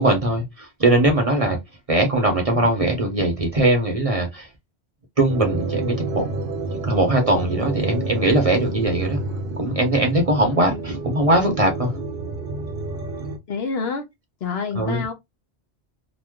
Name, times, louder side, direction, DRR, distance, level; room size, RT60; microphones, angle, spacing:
voice 1, 0.0-1.6 1.9-4.5 5.2-6.3 6.8-9.2 9.6-11.9 14.7-15.0, right 1 dB, 35° right, 0.8 m, -20 dB
sound 1, 5.3-13.4, right 3 dB, 60° right, 1.0 m, -29 dB
voice 2, 13.5-14.0 14.4-15.1, left 5 dB, 65° left, 1.0 m, -27 dB
3.0 x 2.1 x 3.6 m
omnidirectional pair, 1.2 m